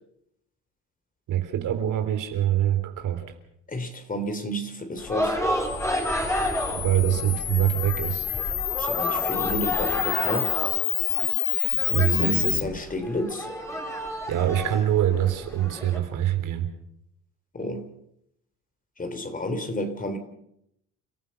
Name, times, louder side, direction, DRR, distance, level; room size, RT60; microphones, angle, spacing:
voice 1, 1.3-3.3 6.7-8.3 11.9-12.6 14.3-16.7, right 11 dB, 70° right, 7 dB, 3.4 m, -24 dB
voice 2, 3.7-5.4 7.0-7.1 8.8-10.5 11.9-13.5 17.5-17.9 19.0-20.2, equal, 25° left, 9 dB, 3.3 m, -31 dB
sound 1, 5.0-16.0, equal, 10° left, 4.4 m, -31 dB
Camera, 5.6-12.6, left 14 dB, 60° left, 0.8 m, -28 dB
29.5 x 14.5 x 7.0 m, 0.78 s
cardioid pair, 90°, 32 cm